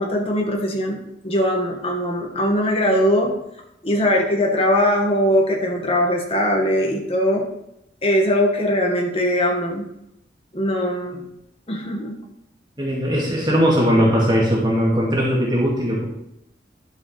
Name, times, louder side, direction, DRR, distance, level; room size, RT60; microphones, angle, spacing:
voice 1, 0.0-3.3 3.8-7.5 8.0-9.9 10.5-11.2 11.7-12.2, equal, 30° left, 0 dB, 1.9 m, -20 dB
voice 2, 12.8-16.0, equal, 25° right, -4 dB, 2.3 m, -19 dB
11.5 x 5.5 x 5.1 m, 0.81 s
head